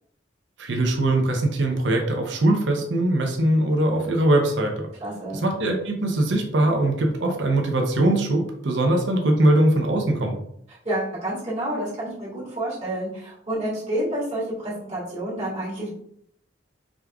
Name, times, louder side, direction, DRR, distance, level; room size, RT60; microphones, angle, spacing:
voice 1, 0.6-4.9 5.3-10.4, right 1 dB, 80° right, 3 dB, 0.7 m, -21 dB
voice 2, 5.0-5.4 10.8-15.9, right 1 dB, 35° right, -8 dB, 1.7 m, -29 dB
5.0 x 3.5 x 2.3 m, 0.70 s
head